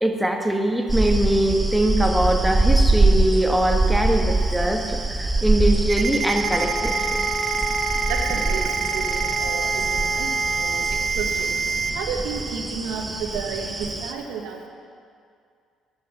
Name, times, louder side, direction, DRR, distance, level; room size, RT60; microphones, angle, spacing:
voice 1, 0.0-7.3, right 1 dB, 5° right, 3 dB, 1.4 m, -22 dB
sound 1, 0.9-14.1, right 2 dB, 20° right, 0.9 m, -24 dB
Ringtone, 5.9-11.9, right 7 dB, 55° right, 0.5 m, -26 dB
sound 2, 6.4-11.1, left 2 dB, 15° left, 1.1 m, -31 dB
voice 2, 8.1-11.6 11.9-14.7, right 5 dB, 80° right, 3 dB, 1.2 m, -32 dB
11.5 x 5.7 x 7.2 m, 2.2 s
hypercardioid pair, 60°, 0 cm